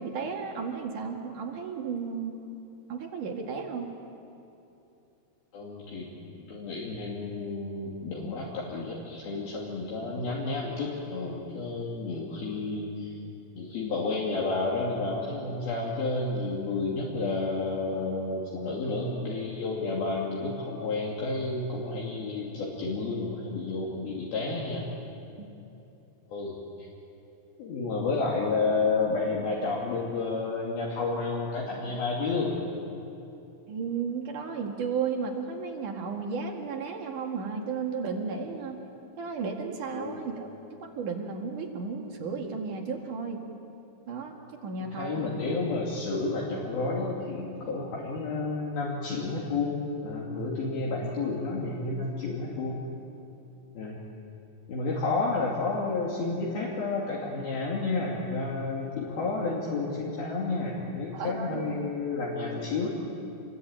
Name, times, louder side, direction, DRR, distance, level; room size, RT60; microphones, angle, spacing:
voice 1, 0.0-2.4 2.9-3.9 25.4-25.5 33.7-38.8 39.2-40.5 40.8-43.4 44.1-44.3 44.6-45.2 61.1-61.6, right 5 dB, 55° right, 2 dB, 3.1 m, -33 dB
voice 2, 5.5-13.2 13.6-24.9 26.3-26.9 27.6-32.5 39.9-40.2 44.8-52.9 53.8-54.0 54.7-62.9, left 3 dB, 60° left, -4 dB, 4.4 m, -31 dB
27.5 x 22.5 x 8.9 m, 2.9 s
omnidirectional pair, 5.1 m